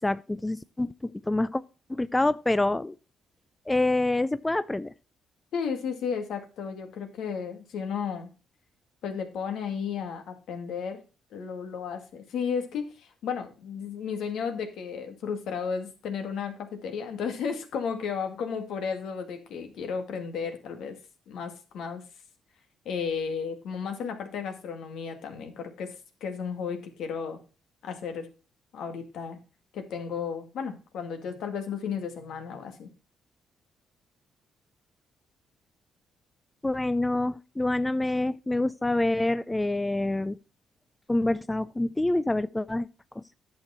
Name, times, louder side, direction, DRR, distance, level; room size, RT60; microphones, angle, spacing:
voice 1, 0.0-1.6 1.9-2.9 3.7-4.9 36.6-40.4 41.1-42.9, left 2 dB, 15° left, 0.4 m, -26 dB
voice 2, 5.5-8.3 9.0-11.0 11.3-21.0 21.3-22.0 22.9-26.0 26.2-27.4 27.8-28.3 28.7-29.4 29.7-32.9, left 6 dB, 75° left, 1.9 m, -33 dB
10.5 x 6.7 x 4.2 m
cardioid pair, 90°, 0 cm